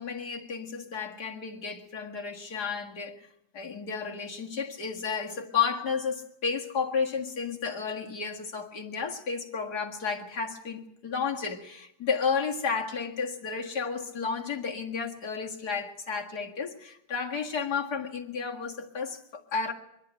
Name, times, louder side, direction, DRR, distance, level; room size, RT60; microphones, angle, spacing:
voice 1, 0.0-3.3 3.5-19.7, left 5 dB, 55° left, 0 dB, 2.4 m, -32 dB
24.5 x 12.0 x 8.9 m, 0.80 s
omnidirectional pair, 2.1 m